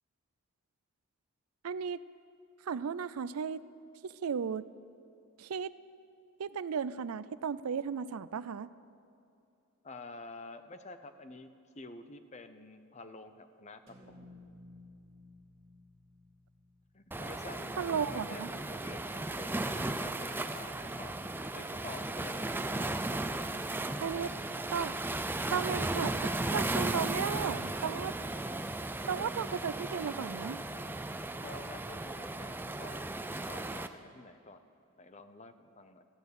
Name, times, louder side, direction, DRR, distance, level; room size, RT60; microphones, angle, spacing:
voice 1, 1.6-2.0 2.6-3.6 4.0-4.6 5.4-5.7 6.4-8.7 17.8-18.5 24.0-24.3 24.7-24.9 25.5-28.1 29.1-30.6, right 7 dB, 85° right, 16 dB, 0.4 m, -35 dB
voice 2, 9.8-11.5 11.7-14.1 16.9-21.2 21.5-22.4 31.4-33.1 33.4-34.6 35.0-36.1, left 3 dB, 30° left, 10 dB, 0.7 m, -49 dB
sound 1, 13.9-18.1, left 2 dB, 30° right, 2.1 m, -57 dB
Waves surf, 17.1-33.9, right 2 dB, 10° right, 0.4 m, -36 dB
13.5 x 9.1 x 8.2 m, 2.6 s
head